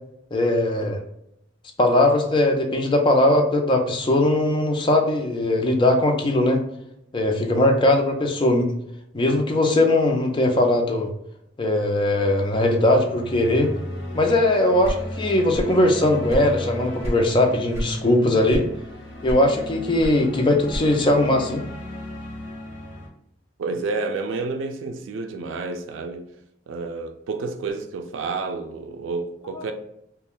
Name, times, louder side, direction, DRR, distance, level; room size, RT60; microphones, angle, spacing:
voice 1, 0.3-1.0 1.8-6.6 7.1-8.7 9.1-11.1 11.6-13.7 14.1-18.6 19.2-21.6 29.6-29.7, left 1 dB, 25° left, 0.4 m, -20 dB
sound 1, 12.0-23.1, left 1 dB, 70° left, 0.7 m, -36 dB
sound 2, 14.8-15.8 16.1-17.3 17.7-18.0 18.5-18.9 19.2-21.1, equal, 15° right, 1.1 m, -30 dB
voice 2, 23.6-26.3 26.7-29.7, right 3 dB, 85° right, 0.4 m, -30 dB
2.4 x 2.2 x 3.6 m
head